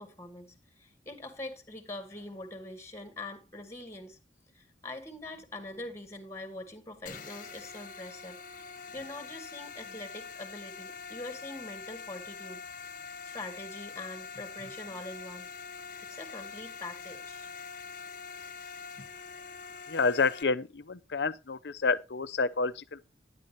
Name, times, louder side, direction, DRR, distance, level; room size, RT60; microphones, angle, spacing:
voice 1, 0.0-4.2 4.5-12.6 13.2-15.5 16.1-17.5, left 2 dB, 15° left, 2.4 m, -43 dB
sound 1, 7.1-20.4, left 5 dB, 50° left, 1.4 m, -44 dB
voice 2, 19.9-23.0, left 4 dB, 70° left, 0.7 m, -29 dB
11.5 x 10.5 x 2.9 m
head